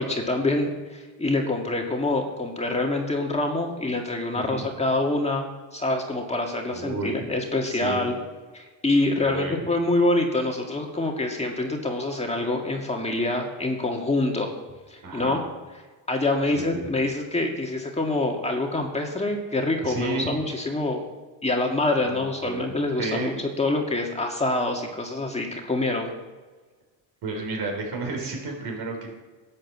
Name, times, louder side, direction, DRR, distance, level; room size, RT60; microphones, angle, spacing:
voice 1, 0.0-5.5 5.7-8.1 8.5-14.5 14.9-15.4 16.1-21.1 21.4-26.1, left 2 dB, 15° left, 1 dB, 2.0 m, -26 dB
voice 2, 4.3-4.7 6.7-7.1 7.7-8.0 9.2-9.5 15.0-15.4 16.5-16.8 19.8-20.3 22.0-22.6 23.0-23.3 27.2-29.1, right 3 dB, 60° right, 2 dB, 4.9 m, -32 dB
12.0 x 8.8 x 7.3 m, 1.3 s
cardioid pair, 100°, 44 cm